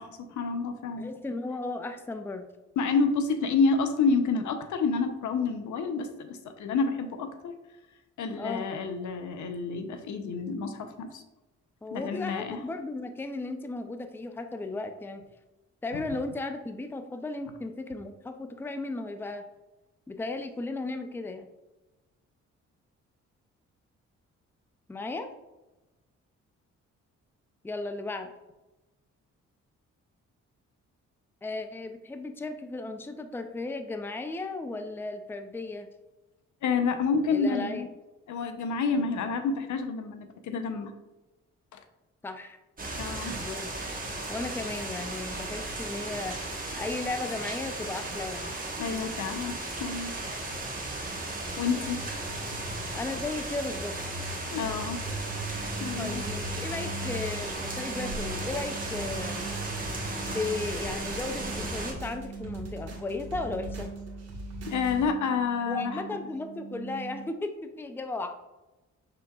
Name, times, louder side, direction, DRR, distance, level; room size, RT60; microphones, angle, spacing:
voice 1, 0.0-1.1 2.8-7.5 8.2-11.2 11.9-12.6 15.9-16.0 36.6-37.9 38.3-40.9 41.7-41.8 43.0-43.4 48.8-50.1 51.6-52.0 54.5-55.0 55.4-55.5 55.8-56.2 64.7-66.0, left 4 dB, 70° left, 7 dB, 0.7 m, -29 dB
voice 2, 1.0-2.5 8.4-8.7 11.8-15.2 15.8-19.4 20.1-21.5 24.9-25.3 27.6-28.3 31.4-35.9 37.3-37.8 42.2-42.6 43.4-43.7 44.3-46.4 46.8-48.5 52.9-54.0 56.0-59.5 60.3-63.9 65.7-68.4, left 3 dB, 5° left, 7 dB, 0.5 m, -35 dB
sound 1, 42.8-61.9, right 2 dB, 30° right, 1.2 m, -35 dB
sound 2, 55.4-67.3, right 6 dB, 80° right, 0.6 m, -43 dB
sound 3, 58.1-65.0, equal, 55° right, 1.5 m, -42 dB
5.9 x 3.6 x 2.3 m, 1.1 s
cardioid pair, 65°, 31 cm